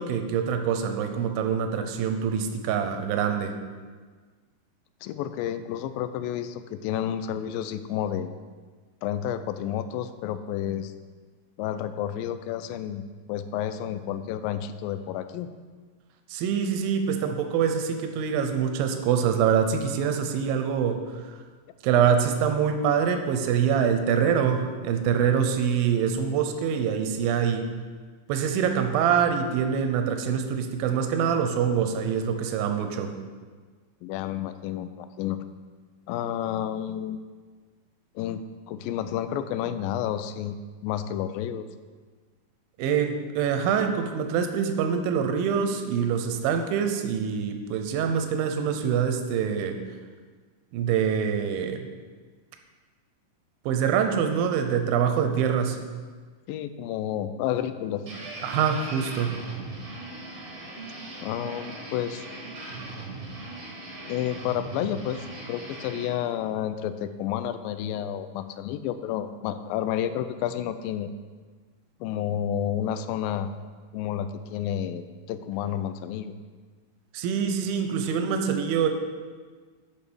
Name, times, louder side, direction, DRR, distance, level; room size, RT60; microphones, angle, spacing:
voice 1, 0.0-3.5 16.3-21.0 21.8-27.7 28.3-33.1 42.8-49.8 50.7-51.9 53.7-55.8 58.4-59.4 77.1-78.9, right 7 dB, 90° right, 6 dB, 2.5 m, -25 dB
voice 2, 5.0-8.3 9.0-10.9 11.6-13.0 13.3-15.5 34.0-35.5 36.1-37.2 38.2-41.7 56.5-58.1 61.2-62.3 64.1-71.1 72.0-73.5 73.9-76.4, left 10 dB, 85° left, 11 dB, 2.3 m, -30 dB
sound 1, 58.1-66.1, right 2 dB, 40° right, 1.2 m, -39 dB
8.6 x 5.4 x 6.2 m, 1.5 s
omnidirectional pair, 4.1 m